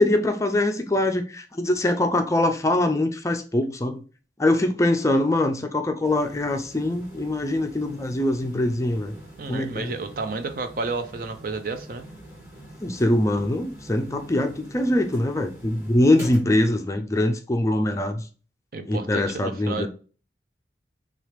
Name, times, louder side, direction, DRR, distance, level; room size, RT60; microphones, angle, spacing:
voice 1, 0.0-4.0 4.4-9.2 9.5-9.9 12.8-18.2 18.9-19.9, left 1 dB, 15° left, 0.4 m, -23 dB
sound 1, 6.0-16.4, right 1 dB, 15° right, 2.5 m, -45 dB
voice 2, 9.4-12.0 18.7-19.9, right 3 dB, 50° right, 0.5 m, -31 dB
6.2 x 2.4 x 3.3 m
head